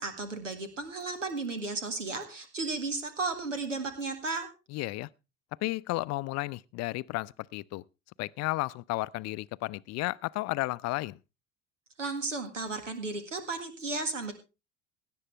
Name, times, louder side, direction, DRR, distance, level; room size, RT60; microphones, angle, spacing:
voice 1, 0.0-4.5 12.0-14.3, right 3 dB, 85° right, 2.0 m, -34 dB
voice 2, 4.7-5.1 5.6-7.8 8.2-11.2, left 21 dB, 45° left, 0.6 m, -33 dB
17.5 x 10.5 x 3.3 m
figure-of-eight pair, 65°, 36 cm